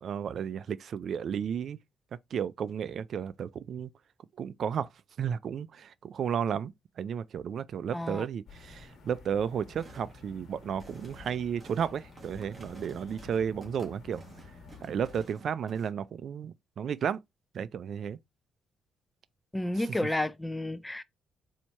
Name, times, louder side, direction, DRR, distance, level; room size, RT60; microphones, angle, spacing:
voice 1, 0.0-1.8 2.3-3.9 4.4-4.9 5.2-14.2 14.8-17.2 17.5-18.2, right 8 dB, 60° right, 0.3 m, -33 dB
voice 2, 7.9-8.2 19.5-21.0, left 1 dB, 10° left, 0.4 m, -31 dB
sound 1, 8.5-15.3, left 4 dB, 65° left, 1.4 m, -51 dB
sound 2, 9.8-10.1 10.6-15.9, right 3 dB, 20° right, 1.6 m, -52 dB
4.3 x 2.8 x 4.4 m
cardioid pair, 90°, 0 cm